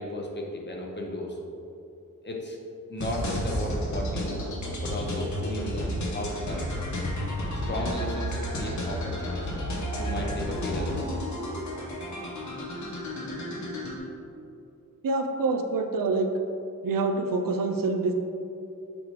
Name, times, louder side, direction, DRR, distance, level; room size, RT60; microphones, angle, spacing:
voice 1, 0.0-1.4 2.2-2.6 2.9-4.4 4.8-6.7 7.4-9.5 10.0-11.0, left 1 dB, 35° left, 0 dB, 0.8 m, -34 dB
sound 1, 3.0-14.0, equal, 60° left, 1.0 m, -32 dB
voice 2, 15.0-16.3 16.8-18.1, right 3 dB, 80° right, 5 dB, 0.6 m, -26 dB
6.9 x 4.7 x 3.2 m, 2.7 s
wide cardioid pair, 165°, 33 cm